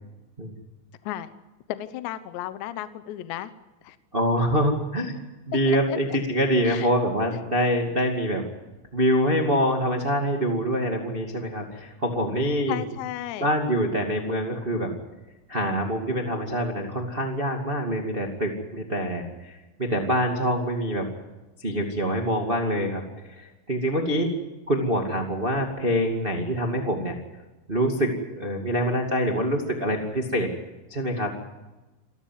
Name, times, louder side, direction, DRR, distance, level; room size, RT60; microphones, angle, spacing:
voice 1, 1.7-3.5 3.8-4.0 5.7-6.2 6.6-6.9 7.3-7.4 12.7-13.5, left 13 dB, 75° left, 12 dB, 2.9 m, -34 dB
voice 2, 4.1-5.1 5.4-8.4 8.9-12.8 13.4-14.9 15.5-21.0 21.6-23.0 23.4-24.3 24.7-27.1 27.7-30.5 30.9-31.3, equal, 85° right, 2 dB, 0.5 m, -25 dB
28.5 x 14.5 x 9.3 m, 1.1 s
omnidirectional pair, 5.8 m